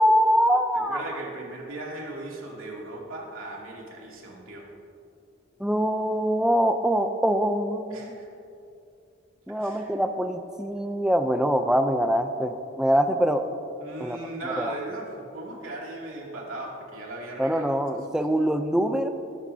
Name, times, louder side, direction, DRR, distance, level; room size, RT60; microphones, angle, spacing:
voice 1, 0.0-1.0 5.6-8.2 9.5-13.5 14.0-14.2 14.6-14.7 17.4-19.1, equal, 5° right, 7 dB, 0.5 m, -23 dB
voice 2, 0.7-4.7 7.9-8.3 9.5-9.9 13.8-18.0, right 2 dB, 90° right, -3 dB, 2.7 m, -37 dB
20.5 x 11.5 x 2.8 m, 2.6 s
head